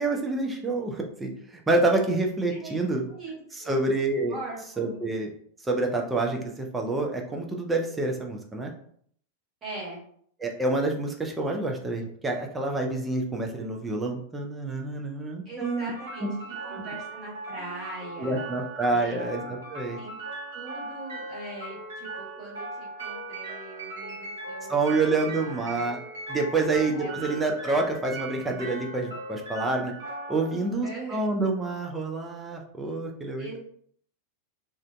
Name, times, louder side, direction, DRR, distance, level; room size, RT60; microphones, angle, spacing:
voice 1, 0.0-3.1 3.5-4.4 4.8-5.3 5.6-8.7 10.4-15.9 16.2-16.3 16.7-16.8 18.2-20.0 24.7-26.0 26.3-29.9 30.3-33.6, right 2 dB, 10° right, 1 dB, 0.4 m, -27 dB
voice 2, 3.1-3.8 4.3-5.0 9.6-10.0 15.4-18.4 18.9-19.3 20.0-20.1 20.5-25.8 26.9-27.3 30.8-31.3 33.4-33.6, right 2 dB, 25° right, -5 dB, 1.2 m, -41 dB
sound 1, 15.6-31.6, right 2 dB, 70° right, 0.8 m, -39 dB
2.5 x 2.1 x 2.4 m, 0.62 s
figure-of-eight pair, 90°, 0 cm